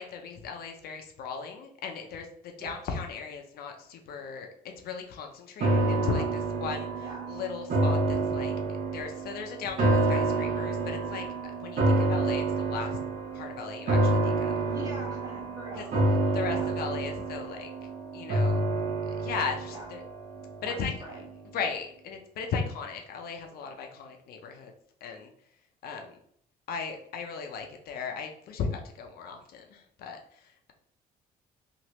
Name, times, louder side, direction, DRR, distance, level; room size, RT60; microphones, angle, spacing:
voice 1, 0.0-4.5 4.8-6.2 6.6-8.5 8.9-11.2 11.6-13.0 13.3-14.6 15.8-15.9 16.3-17.7 18.1-18.6 19.1-20.0 20.6-20.9 21.5-24.7 25.0-25.3 25.8-26.2 26.7-30.7, left 5 dB, 65° left, 3 dB, 0.5 m, -37 dB
sound 1, 5.6-20.9 21.3-21.4, right 2 dB, 50° right, 0.8 m, -28 dB
voice 2, 5.8-6.3 7.0-7.3 14.6-16.7 19.7-19.9 20.4-21.2, right 1 dB, 20° right, -3 dB, 1.2 m, -43 dB
2.9 x 2.5 x 3.0 m, 0.67 s
cardioid pair, 110°, 17 cm